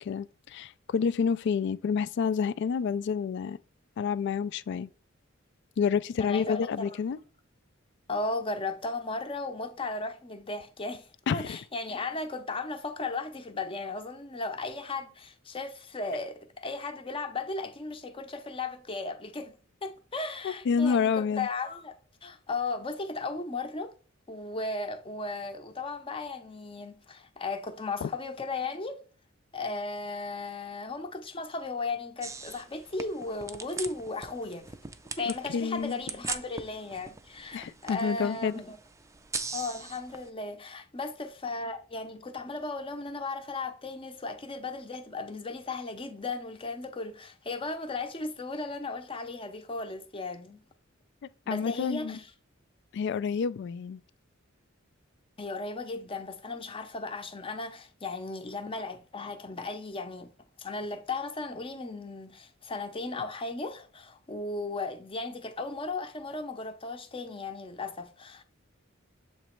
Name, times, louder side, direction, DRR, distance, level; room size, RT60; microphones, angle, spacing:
voice 1, 0.0-3.6 4.0-4.9 5.8-7.2 11.3-11.6 20.4-21.5 28.0-28.1 35.3-35.9 37.5-38.5 51.5-52.2 52.9-54.0, left 6 dB, 60° left, 0.3 m, -29 dB
voice 2, 6.2-7.0 8.1-19.5 19.8-22.0 22.2-23.9 24.3-29.0 29.5-34.7 35.2-38.8 39.5-50.6 51.5-52.3 55.4-60.3 60.6-68.4, left 3 dB, 25° left, 0.6 m, -36 dB
sound 1, 32.2-40.3, right 4 dB, 15° right, 0.4 m, -41 dB
7.3 x 3.0 x 4.4 m
head